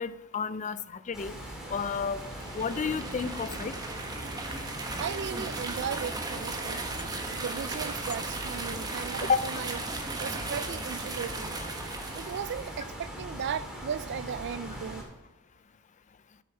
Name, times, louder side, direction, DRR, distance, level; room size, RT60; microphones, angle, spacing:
voice 1, 0.0-1.3 1.7-2.2 2.5-3.7 9.2-9.4, left 6 dB, 35° left, 0.4 m, -31 dB
sound 1, 1.1-15.0, equal, 5° right, 2.5 m, -41 dB
sound 2, 2.1-12.9, right 3 dB, 20° right, 1.1 m, -37 dB
voice 2, 5.0-6.8 7.4-9.8 10.2-11.6 12.2-15.0, right 7 dB, 55° right, 0.4 m, -36 dB
7.9 x 7.9 x 6.3 m
head